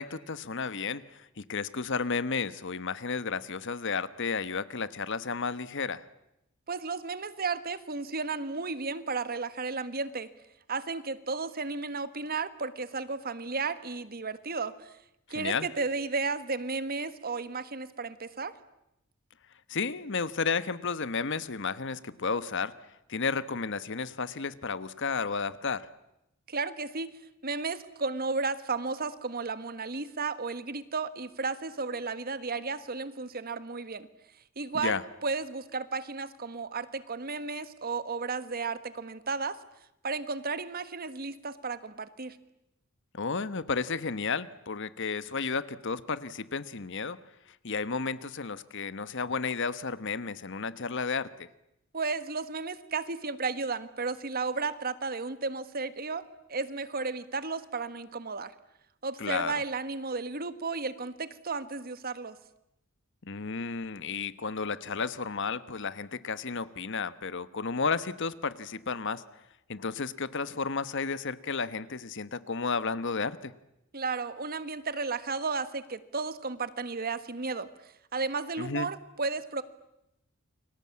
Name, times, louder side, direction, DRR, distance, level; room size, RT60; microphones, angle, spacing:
voice 1, 0.0-6.0 15.3-15.7 19.7-22.7 23.1-25.9 34.8-35.0 43.1-47.2 47.6-51.5 59.2-59.5 63.2-69.2 69.7-73.5 78.6-78.9, left 5 dB, 60° left, 15 dB, 1.2 m, -32 dB
voice 2, 6.7-10.3 10.7-14.9 15.3-18.5 26.5-27.1 27.4-34.1 34.6-39.6 40.0-42.4 51.9-58.5 59.0-62.4 73.9-77.7 78.1-79.6, right 4 dB, 45° right, 13 dB, 1.5 m, -33 dB
29.5 x 23.5 x 8.5 m, 0.86 s
head